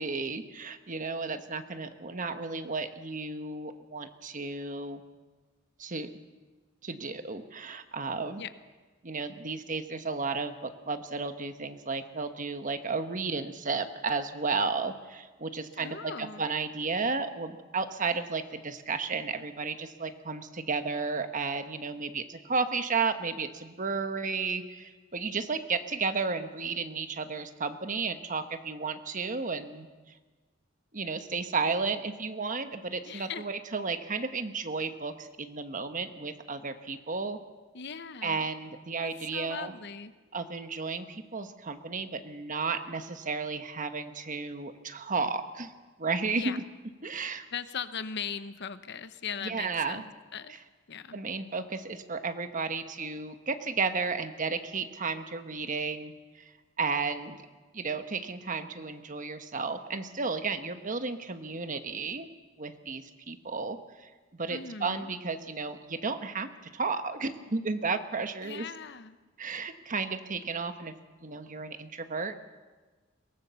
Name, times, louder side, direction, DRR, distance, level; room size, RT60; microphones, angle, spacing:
voice 1, 0.0-5.0 5.8-6.1 6.8-8.4 9.0-29.9 30.9-37.4 38.2-39.7 40.3-45.7 46.0-46.6 47.0-47.4 49.4-50.0 51.1-56.1 56.4-56.5 56.8-57.4 57.7-62.3 62.6-64.1 64.4-68.7 69.4-70.9 71.2-72.3, right 4 dB, 40° right, 9 dB, 1.2 m, -33 dB
voice 2, 15.8-16.5 33.1-33.4 37.7-38.5 39.0-40.1 46.3-46.6 47.5-50.5 50.9-51.2 64.5-65.1 68.4-69.2, left 7 dB, 60° left, 12 dB, 0.9 m, -39 dB
23.0 x 18.0 x 7.0 m, 1.3 s
head